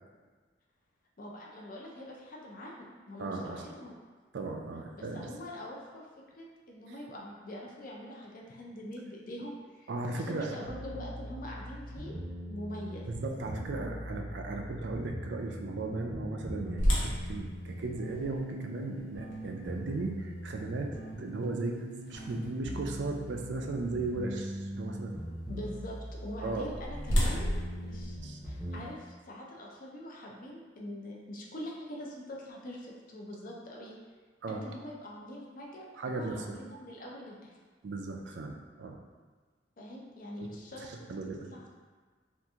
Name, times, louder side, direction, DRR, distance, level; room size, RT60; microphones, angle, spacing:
voice 1, 1.2-3.9 4.9-6.1 6.4-12.2 12.5-13.1 25.5-28.2 28.4-34.0 34.5-37.5 39.8-40.9 41.5-41.7, left 1 dB, 45° left, -2 dB, 0.5 m, -44 dB
voice 2, 3.2-3.7 4.3-5.3 6.9-7.0 9.9-10.6 13.1-25.2 26.4-26.7 28.2-28.4 34.4-34.6 36.0-36.6 37.8-39.0 40.4-40.5 40.8-41.5, right 3 dB, 65° right, 3 dB, 0.4 m, -36 dB
sound 1, 10.1-28.8, equal, 5° right, 0.7 m, -41 dB
sound 2, 16.8-22.7 23.3-23.4 24.0-24.2 26.3-28.9, equal, 80° left, 0.8 m, -34 dB
2.8 x 2.5 x 3.5 m, 1.5 s
head